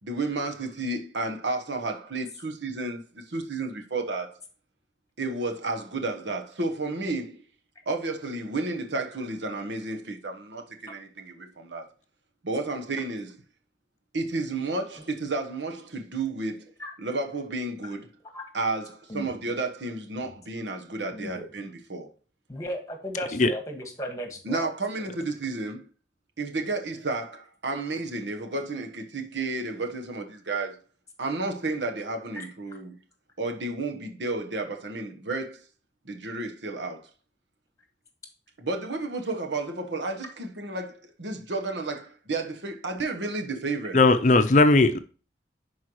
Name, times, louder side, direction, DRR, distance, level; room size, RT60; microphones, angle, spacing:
voice 1, 0.0-4.4 5.2-7.4 7.9-11.9 12.4-13.4 14.1-16.7 17.0-18.1 18.5-22.1 24.4-25.9 26.4-30.8 31.2-33.0 33.4-35.6 36.0-37.1 38.6-44.0, right 3 dB, 90° right, 1.2 m, -32 dB
voice 2, 21.1-21.5 22.5-24.7 32.4-32.8, equal, 20° left, 1.6 m, -36 dB
voice 3, 43.9-45.0, left 2 dB, 45° left, 0.6 m, -18 dB
10.5 x 4.6 x 3.1 m
head